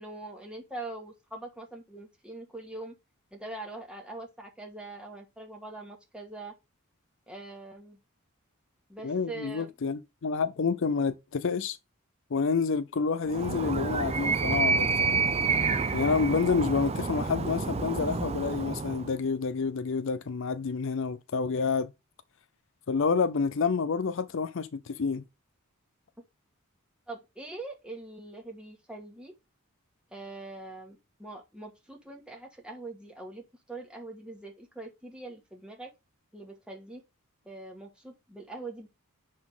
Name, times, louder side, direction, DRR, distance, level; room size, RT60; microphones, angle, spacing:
voice 1, 0.0-3.0 3.3-6.5 7.3-8.0 8.9-9.7 27.1-29.3 30.1-35.9 36.3-37.0 37.4-38.9, right 2 dB, 5° right, 2.2 m, -43 dB
voice 2, 9.0-11.8 12.3-15.2 15.9-21.9 22.9-25.2, left 5 dB, 60° left, 0.5 m, -28 dB
Animal, 13.3-19.1, right 4 dB, 30° right, 0.5 m, -29 dB
10.5 x 4.3 x 3.7 m
head